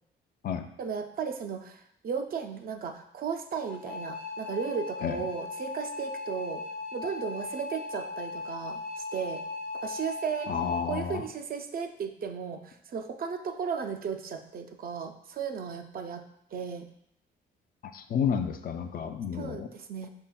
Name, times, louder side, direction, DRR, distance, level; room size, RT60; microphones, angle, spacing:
voice 1, 0.8-6.6 6.9-9.4 9.8-10.5 10.9-16.9 19.3-20.1, right 6 dB, 50° right, 6 dB, 0.4 m, -35 dB
sound 1, 3.7-10.9, left 3 dB, 65° left, 1.0 m, -38 dB
voice 2, 10.5-11.2 17.9-19.7, left 7 dB, 45° left, 7 dB, 0.4 m, -31 dB
5.4 x 3.4 x 2.2 m, 0.73 s
cardioid pair, 90°, 20 cm